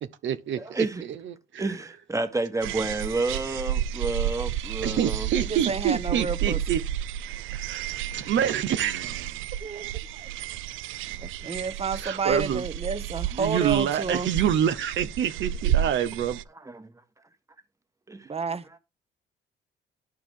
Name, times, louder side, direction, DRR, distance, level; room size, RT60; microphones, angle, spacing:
voice 1, 0.0-1.8 4.8-6.8 7.5-9.5 11.9-12.6 13.3-16.4, right 9 dB, 70° right, 0.8 m, -27 dB
voice 2, 0.6-1.0 1.6-5.3 8.1-8.2 11.4-11.5 16.7-16.9 18.1-18.3, right 3 dB, 15° right, 1.6 m, -30 dB
sound 1, 2.6-16.4, right 11 dB, 85° right, 0.4 m, -32 dB
voice 3, 5.4-6.6 9.6-10.3 11.2-14.3 18.3-18.6, right 5 dB, 30° right, 1.1 m, -30 dB
11.5 x 4.7 x 3.7 m
cardioid pair, 90°, 20 cm